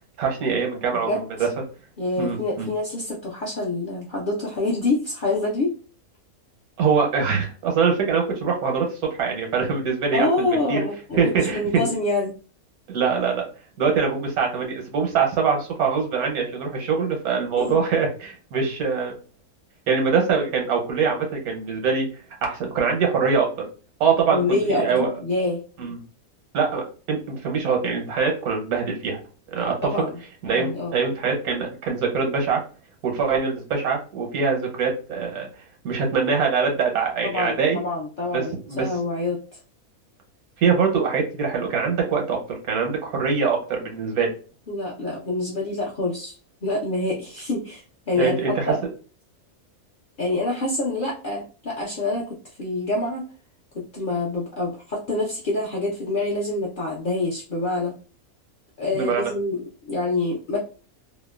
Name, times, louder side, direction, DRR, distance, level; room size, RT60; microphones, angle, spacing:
voice 1, 0.2-1.5 2.2-2.7 6.8-8.9 9.2-10.8 11.2-11.9 12.9-13.5 13.8-19.1 19.9-22.1 22.4-23.5 24.0-25.1 25.8-26.0 26.5-29.2 29.5-29.9 30.4-32.6 33.0-35.5 35.8-37.8 38.3-38.9 40.6-42.4 42.7-44.3 48.2-48.7 58.9-59.3, right 5 dB, 90° right, 1 dB, 1.3 m, -23 dB
voice 2, 0.9-1.2 2.0-5.7 10.1-11.2 11.5-12.3 17.6-17.7 24.3-25.6 29.8-30.2 30.5-30.9 37.2-39.4 44.7-46.3 46.6-48.8 50.2-52.3 52.6-53.2 53.9-57.9 58.8-60.6, left 2 dB, 60° left, -4 dB, 0.5 m, -26 dB
2.8 x 2.1 x 2.3 m, 0.36 s
omnidirectional pair, 1.5 m